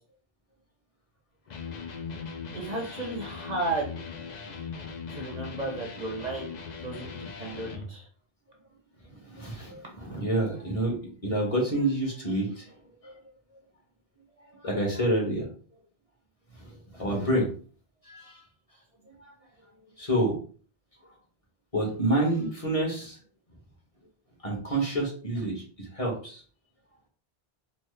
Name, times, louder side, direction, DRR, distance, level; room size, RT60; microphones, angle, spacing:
Electric guitar, 1.5-7.9, left 5 dB, 50° left, 0.6 m, -39 dB
voice 1, 2.5-4.0 5.1-6.5 6.8-8.1, right 2 dB, 45° right, -1 dB, 0.8 m, -33 dB
voice 2, 9.2-12.7 13.0-13.1 14.5-15.5 16.6-17.5 18.1-18.4 19.2-19.3 20.0-20.4 21.7-23.2 24.4-26.4, right 1 dB, 35° left, -2 dB, 1.2 m, -28 dB
4.1 x 2.1 x 3.2 m, 0.41 s
omnidirectional pair, 1.0 m